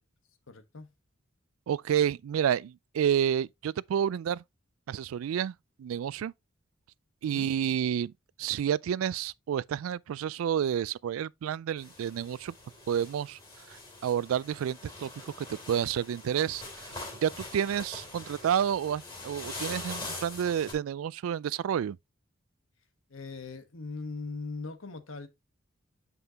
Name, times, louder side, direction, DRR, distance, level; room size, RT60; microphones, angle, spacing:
voice 1, 0.5-0.9 7.2-7.5 18.1-18.2 23.1-25.3, left 3 dB, 75° left, 1.2 m, -40 dB
voice 2, 1.7-4.4 4.9-5.5 5.8-6.3 7.2-8.1 8.4-12.5 12.9-13.4 14.0-15.1 15.4-22.0, right 9 dB, 85° right, 0.3 m, -30 dB
sound 1, 11.8-20.7, left 2 dB, 20° left, 2.7 m, -43 dB
8.0 x 5.5 x 2.8 m
head